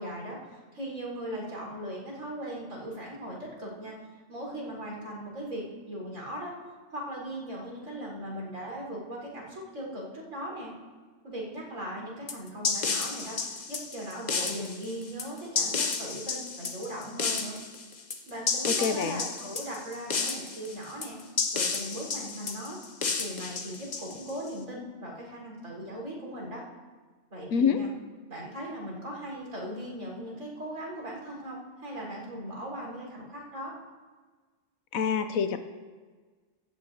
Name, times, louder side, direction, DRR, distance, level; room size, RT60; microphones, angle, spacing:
voice 1, 0.0-3.9 4.3-6.5 6.9-10.7 11.2-13.4 13.7-17.6 18.3-21.2 21.5-22.8 23.2-26.6 27.3-27.9 28.3-33.7, right 1 dB, 75° right, -3 dB, 5.0 m, -38 dB
sound 1, 12.3-24.5, left 4 dB, 40° left, 0.7 m, -32 dB
voice 2, 18.7-19.2 27.5-27.8 34.9-35.6, left 6 dB, 80° left, 9 dB, 1.2 m, -26 dB
17.5 x 13.5 x 2.8 m, 1.4 s
omnidirectional pair, 1.4 m